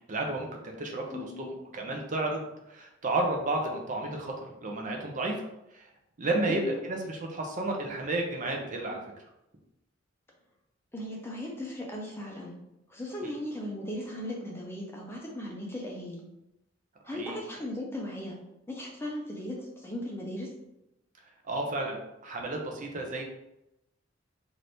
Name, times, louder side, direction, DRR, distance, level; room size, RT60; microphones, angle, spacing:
voice 1, 0.1-1.5 1.7-2.4 2.7-5.5 5.7-5.9 6.2-9.0 17.1-17.4 21.5-23.2, right 2 dB, 40° right, 1 dB, 0.5 m, -32 dB
voice 2, 1.1-1.5 6.5-6.8 10.9-12.5 12.9-16.2 17.0-18.4 18.7-20.5, left 1 dB, 10° left, -2 dB, 0.5 m, -37 dB
2.9 x 2.6 x 3.3 m, 0.87 s
head